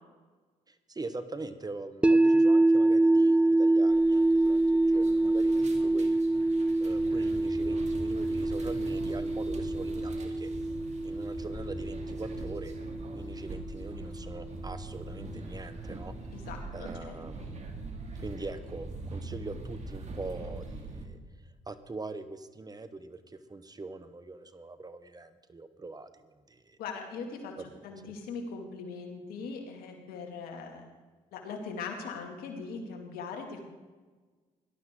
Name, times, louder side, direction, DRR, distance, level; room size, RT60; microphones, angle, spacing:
voice 1, 0.7-6.2 6.8-10.5 11.0-12.7 13.1-16.2 16.7-17.6 18.2-21.2 21.4-26.8 27.6-27.8, right 3 dB, 25° right, 11 dB, 1.2 m, -42 dB
sound 1, 2.0-14.1, right 2 dB, 10° right, 0.4 m, -26 dB
sound 2, 3.9-21.1, right 2 dB, 50° right, 2.5 m, -44 dB
sound 3, 6.9-16.3, left 1 dB, 30° left, 5.4 m, -45 dB
voice 2, 16.3-17.5 26.8-27.5 27.8-30.9 31.3-33.6, left 4 dB, 80° left, 3 dB, 2.5 m, -40 dB
18.0 x 12.0 x 3.8 m, 1.3 s
supercardioid pair, 60°, 15 cm